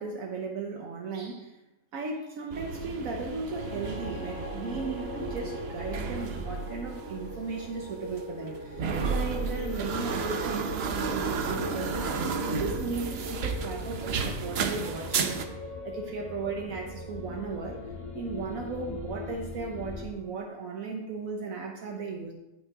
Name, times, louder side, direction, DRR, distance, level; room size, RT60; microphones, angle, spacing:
voice 1, 0.0-1.6 1.9-15.4 15.8-17.8 18.1-22.3, right 4 dB, 75° right, 1 dB, 1.3 m, -36 dB
sound 1, 2.5-15.4, right 5 dB, 55° right, 0.9 m, -33 dB
sound 2, 3.4-19.7, left 1 dB, 90° left, 2.4 m, -43 dB
sound 3, 9.3-20.1, left 3 dB, 30° left, 0.7 m, -41 dB
8.1 x 6.3 x 4.8 m, 0.95 s
omnidirectional pair, 1.4 m